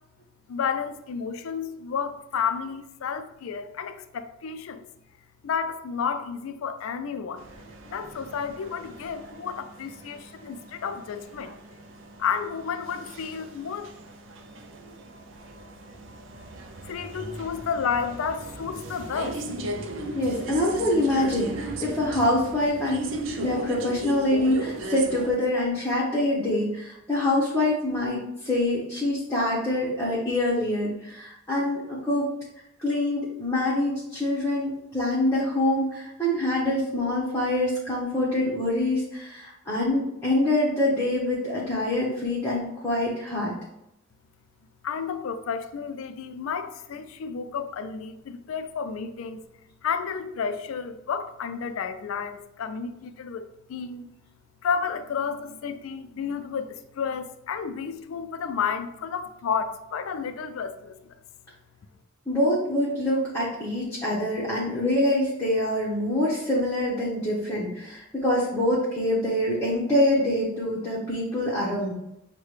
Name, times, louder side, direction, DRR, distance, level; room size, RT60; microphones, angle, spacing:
voice 1, 0.5-4.8 5.4-7.5 7.8-11.5 12.2-13.9 16.8-19.4 44.8-49.4 49.8-54.0 54.6-61.2, left 6 dB, 75° left, 10 dB, 0.4 m, -31 dB
sound 1, 7.4-25.3, right 2 dB, 65° right, 0.4 m, -37 dB
voice 2, 20.1-23.1 23.3-32.3 32.8-43.5 62.3-71.9, left 1 dB, 15° left, -7 dB, 0.8 m, -25 dB
6.5 x 2.2 x 3.1 m, 0.84 s
head